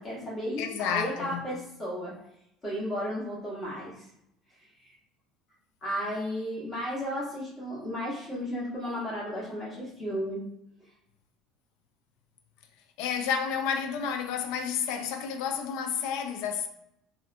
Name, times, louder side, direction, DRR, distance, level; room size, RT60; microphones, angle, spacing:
voice 1, 0.0-2.1 2.6-4.0 4.8-4.9 5.8-10.4, equal, 25° left, 1.0 m, -34 dB
voice 2, 0.6-1.5 13.0-16.7, left 7 dB, 75° left, 0.3 m, -30 dB
2.7 x 2.1 x 2.5 m
cardioid pair, 125°, 0 cm